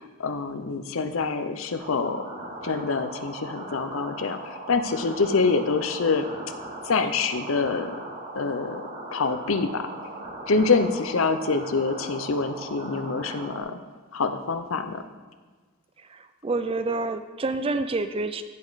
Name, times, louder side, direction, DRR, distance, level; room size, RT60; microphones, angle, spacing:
voice 1, 0.0-2.2 2.6-6.3 6.9-7.9 8.3-8.8 9.1-9.9 10.5-13.8 14.1-15.0, left 4 dB, 65° left, 9 dB, 0.6 m, -26 dB
sound 1, 1.8-13.6, right 2 dB, 45° right, 2.2 m, -39 dB
voice 2, 16.1-18.4, right 3 dB, 25° right, 10 dB, 0.4 m, -28 dB
15.0 x 5.3 x 4.0 m, 1.4 s
head